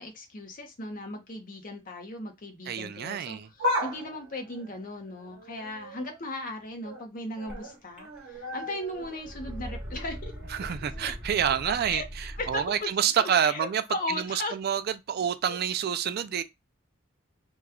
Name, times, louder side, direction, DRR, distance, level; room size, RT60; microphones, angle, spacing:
voice 1, 0.0-10.3 11.0-11.1 11.9-12.0 12.4-12.9 13.2-14.5 15.5-15.6, left 2 dB, 45° left, 0.8 m, -37 dB
voice 2, 2.7-3.5 10.5-16.4, right 8 dB, 50° right, 0.3 m, -28 dB
sound 1, 3.5-6.2 6.6-7.1 7.4-11.3 11.6-11.7 12.7-12.8, left 1 dB, 80° right, 0.9 m, -37 dB
sound 2, 7.5-7.6 8.0-8.5 8.8-12.8, equal, 5° right, 1.1 m, -41 dB
3.0 x 2.3 x 3.5 m
head